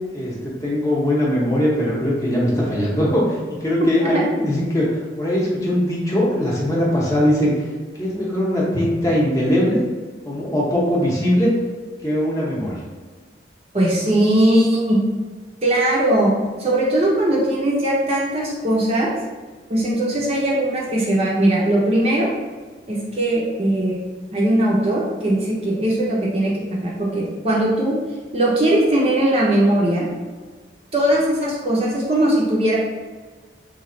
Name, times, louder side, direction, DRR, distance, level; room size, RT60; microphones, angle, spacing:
voice 1, 0.1-7.7 7.9-9.8 10.2-11.5 12.0-12.8, equal, 20° left, -6 dB, 0.8 m, -21 dB
voice 2, 13.7-15.0 15.6-16.3 16.6-19.1 19.7-22.3 22.9-24.0 24.3-27.9 28.3-30.1 30.9-32.8, right 1 dB, 35° right, -4 dB, 0.6 m, -19 dB
3.1 x 2.3 x 3.8 m, 1.4 s
head